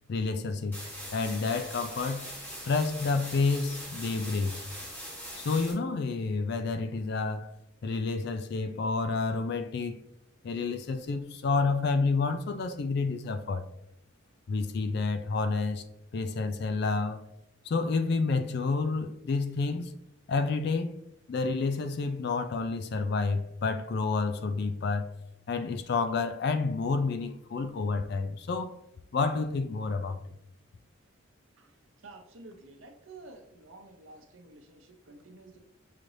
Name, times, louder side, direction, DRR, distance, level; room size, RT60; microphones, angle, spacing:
voice 1, 0.1-0.8 1.1-2.3 2.6-4.6 5.4-7.6 7.8-10.0 10.4-13.7 14.5-15.8 16.1-17.2 17.7-19.9 20.3-21.0 21.3-25.1 25.5-28.8 29.1-30.2, left 4 dB, 50° left, 0.3 m, -29 dB
sound 1, 0.7-5.7, equal, 10° left, 1.0 m, -41 dB
voice 2, 31.6-35.6, right 2 dB, 70° right, 0.6 m, -51 dB
5.7 x 3.2 x 2.6 m
head